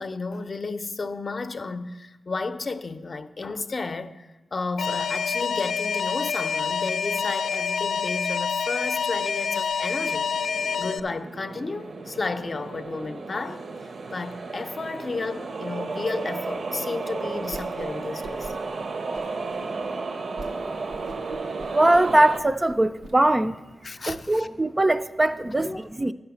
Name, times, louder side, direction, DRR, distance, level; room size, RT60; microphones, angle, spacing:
voice 1, 0.0-10.3 10.8-13.7 14.1-18.5 20.9-21.0 23.8-24.5 25.4-25.8, left 3 dB, 45° left, 0.6 m, -32 dB
Alarm, 4.8-11.0, left 6 dB, 90° left, 0.4 m, -27 dB
sound 1, 10.0-22.4, right 3 dB, 60° right, 0.6 m, -33 dB
Whoosh swoosh swish, 17.4-17.9 18.2-18.7 19.1-19.6 20.0-20.1 20.4-20.6 20.9-23.1, right 2 dB, 90° right, 0.9 m, -41 dB
voice 2, 21.7-23.6 24.1-26.1, right 1 dB, 20° right, 0.3 m, -21 dB
11.0 x 5.5 x 7.0 m
wide cardioid pair, 90°, 0 cm